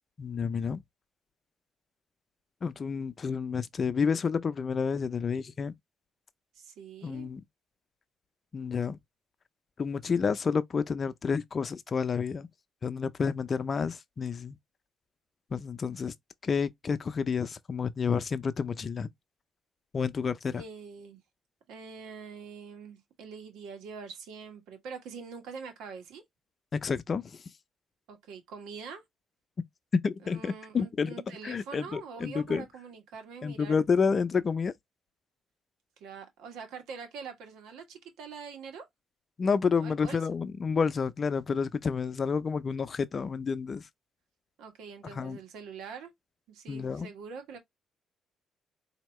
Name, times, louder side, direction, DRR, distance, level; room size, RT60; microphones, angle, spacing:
voice 1, 0.2-0.8 2.6-5.7 7.0-7.4 8.5-9.0 9.8-12.5 12.8-14.6 15.5-16.1 16.4-19.1 19.9-20.6 26.7-27.4 29.9-31.1 31.4-32.6 33.4-34.7 39.4-43.8 45.1-45.4 46.7-47.1, left 5 dB, 40° left, 0.5 m, -29 dB
voice 2, 6.5-7.3 20.5-21.2 21.7-26.2 28.1-29.0 30.2-33.8 36.0-38.9 39.7-40.2 44.6-46.1 46.5-47.6, right 5 dB, 90° right, 1.5 m, -44 dB
4.4 x 2.8 x 3.1 m
cardioid pair, 90°, 0 cm